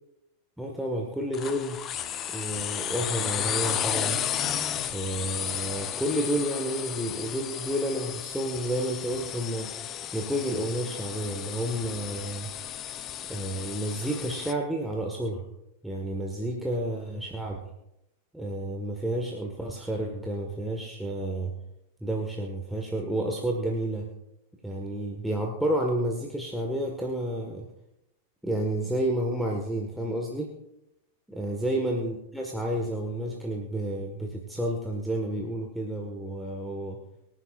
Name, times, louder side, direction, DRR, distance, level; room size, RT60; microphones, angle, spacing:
voice 1, 0.6-1.8 2.3-4.2 4.9-9.7 10.1-12.5 13.3-15.4 15.8-17.7 18.3-21.5 22.0-24.1 24.6-27.7 28.4-30.5 31.3-37.0, right 1 dB, ahead, -1 dB, 1.7 m, -30 dB
sound 1, 1.3-14.5, left 10 dB, 30° left, 0.8 m, -33 dB
24.5 x 9.8 x 2.6 m, 0.85 s
figure-of-eight pair, 90°, 0 cm